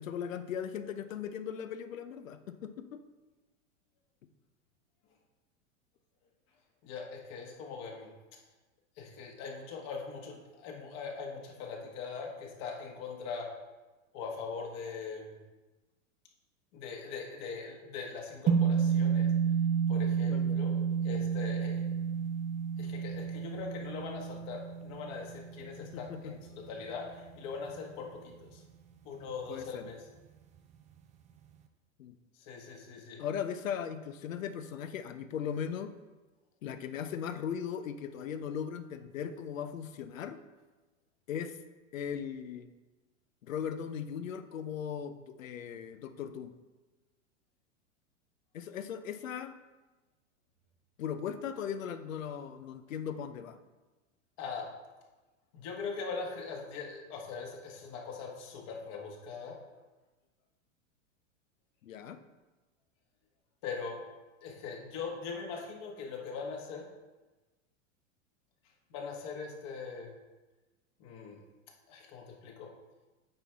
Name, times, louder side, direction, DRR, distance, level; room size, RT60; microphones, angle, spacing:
voice 1, 0.0-3.0 20.3-20.6 25.8-26.3 29.5-29.9 32.0-32.1 33.2-35.9 36.6-40.4 41.3-41.6 41.9-42.7 43.4-46.5 48.5-49.6 51.0-53.6 61.8-62.2, left 8 dB, 85° left, 10 dB, 0.7 m, -38 dB
voice 2, 6.8-8.1 9.0-13.5 14.1-15.3 16.7-19.3 19.9-20.8 21.0-21.8 22.8-28.6 29.0-30.0 32.5-33.2 54.4-54.7 55.5-59.6 63.6-64.0 64.4-66.8 68.9-70.1 71.0-71.4 71.9-72.7, left 5 dB, 50° left, 0 dB, 1.6 m, -41 dB
sound 1, 18.5-26.9, right 7 dB, 20° right, 0.4 m, -30 dB
8.8 x 4.4 x 3.5 m, 1.2 s
hypercardioid pair, 105°, 39 cm